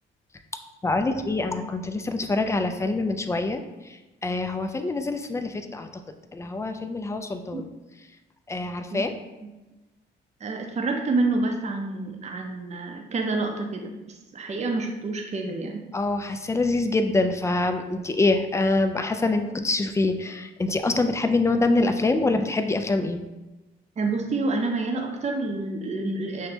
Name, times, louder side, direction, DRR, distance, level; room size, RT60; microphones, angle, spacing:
voice 1, 0.8-5.9 6.3-7.7 8.5-9.1 15.9-23.2, left 2 dB, 15° left, 7 dB, 0.3 m, -25 dB
voice 2, 10.4-15.8 24.0-26.5, right 3 dB, 35° right, 3 dB, 0.6 m, -28 dB
5.9 x 2.1 x 2.8 m, 1.1 s
cardioid pair, 90°, 20 cm